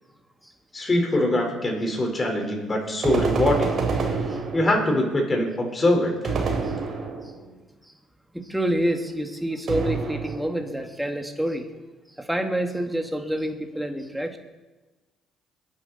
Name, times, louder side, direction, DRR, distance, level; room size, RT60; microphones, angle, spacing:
voice 1, 0.7-3.7 4.5-6.3, left 1 dB, 30° left, 2 dB, 4.3 m, -23 dB
sound 1, 3.0-5.0 6.2-7.4 9.7-10.7, right 4 dB, 55° right, 3.3 m, -27 dB
voice 2, 7.2-7.5 8.3-11.6 12.2-14.4, right 1 dB, 5° right, 4 dB, 2.0 m, -28 dB
22.0 x 9.9 x 4.2 m, 1.2 s
supercardioid pair, 80°, 0 cm